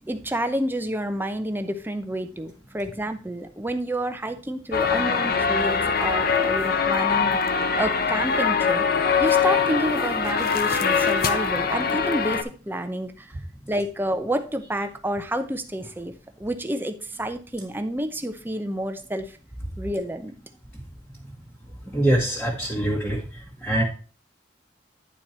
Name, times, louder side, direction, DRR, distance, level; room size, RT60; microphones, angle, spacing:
voice 1, 0.1-8.8 9.2-13.3 13.7-19.4 19.8-20.4, right 1 dB, 10° right, 8 dB, 0.7 m, -29 dB
sound 1, 4.7-12.4, left 5 dB, 55° left, 0.7 m, -22 dB
voice 2, 21.9-23.2 23.6-23.8, right 1 dB, 5° left, -4 dB, 1.3 m, -23 dB
10.5 x 4.5 x 4.3 m, 0.38 s
head